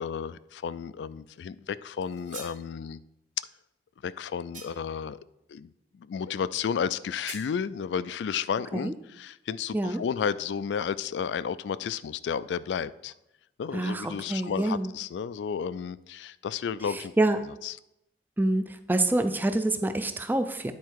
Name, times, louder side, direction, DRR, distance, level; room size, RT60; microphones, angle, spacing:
voice 1, 0.0-3.0 4.0-5.2 5.5-13.1 13.6-17.1 17.6-17.8, left 7 dB, 80° left, 0.3 m, -32 dB
sound 1, 2.0-2.6 4.5-5.0 7.3-7.5, right 4 dB, 50° right, 1.3 m, -44 dB
voice 2, 13.7-14.9 16.9-17.4 18.4-20.7, right 2 dB, 10° right, 0.4 m, -27 dB
9.5 x 4.4 x 4.6 m
head